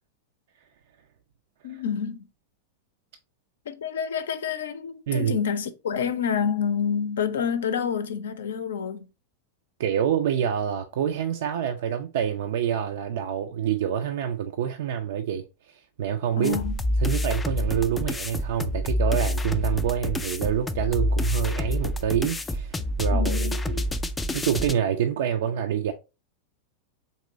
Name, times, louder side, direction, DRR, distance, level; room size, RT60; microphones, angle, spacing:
voice 1, 1.6-2.3 3.7-9.1 16.4-16.8 23.1-23.6, left 7 dB, 65° left, 0.5 m, -28 dB
voice 2, 9.8-16.6 17.0-23.9 24.3-25.9, right 9 dB, 55° right, 0.4 m, -27 dB
sound 1, 16.4-24.7, left 1 dB, 10° left, 0.4 m, -27 dB
4.1 x 2.9 x 3.8 m
figure-of-eight pair, 90°, 0 cm